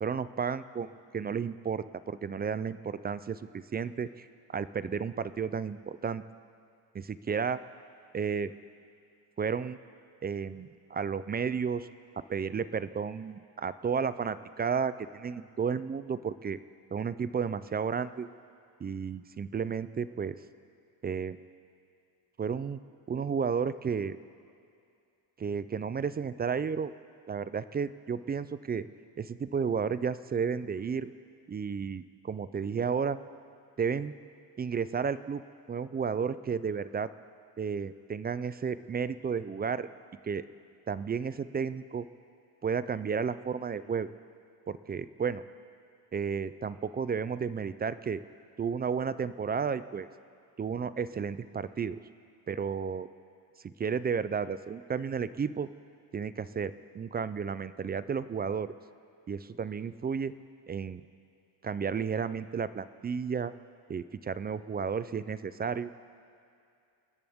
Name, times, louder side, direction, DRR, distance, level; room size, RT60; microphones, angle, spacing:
voice 1, 0.0-4.3 4.5-6.2 6.9-7.6 8.1-8.5 9.4-9.8 10.2-11.9 12.3-16.6 16.9-18.3 18.8-20.4 21.0-21.4 22.4-22.8 23.1-24.2 25.4-26.9 27.3-28.9 29.2-31.1 31.5-33.2 33.8-34.1 34.6-35.4 35.7-37.1 37.6-39.9 40.2-40.4 40.9-42.0 42.6-44.1 44.7-45.4 46.1-48.2 48.6-50.1 50.6-52.0 52.5-53.1 53.6-55.7 56.1-58.7 59.3-60.3 60.7-61.0 61.6-63.5 63.9-65.9, right 6 dB, 25° right, 14 dB, 0.3 m, -32 dB
29.0 x 14.0 x 3.6 m, 2.4 s
cardioid pair, 130°, 43 cm